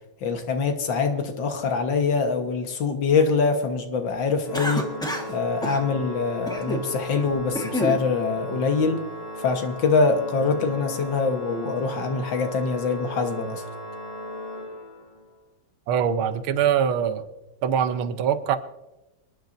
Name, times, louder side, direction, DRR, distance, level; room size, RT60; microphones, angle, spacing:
voice 1, 0.2-4.9 5.3-9.0 9.4-13.6, left 4 dB, 65° left, 5 dB, 2.0 m, -24 dB
Organ, 4.4-15.3, left 1 dB, 85° left, 3.9 m, -36 dB
Cough, 4.5-5.3 5.6-5.8 6.5-6.9 7.3-8.0, equal, 5° left, 1.1 m, -29 dB
voice 2, 15.9-17.3 17.6-18.6, right 8 dB, 85° right, 10 dB, 1.7 m, -23 dB
26.5 x 10.5 x 2.6 m, 1.0 s
omnidirectional pair, 2.3 m